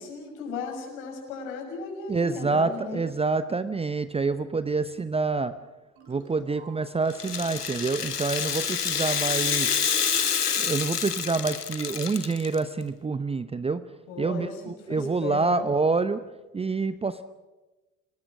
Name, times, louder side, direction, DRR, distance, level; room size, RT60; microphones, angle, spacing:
voice 1, 0.0-3.0 14.1-15.7, left 4 dB, 60° left, 3 dB, 6.3 m, -36 dB
voice 2, 2.1-5.5 6.1-9.7 10.6-13.8 14.2-16.2 16.5-17.2, right 4 dB, 15° right, 13 dB, 0.8 m, -27 dB
sound 1, 6.0-9.2, right 5 dB, 60° right, 6.6 m, -53 dB
Rattle (instrument), 7.1-12.6, left 7 dB, 85° left, 1.0 m, -28 dB
29.5 x 19.5 x 6.2 m, 1.1 s
figure-of-eight pair, 65°, 45 cm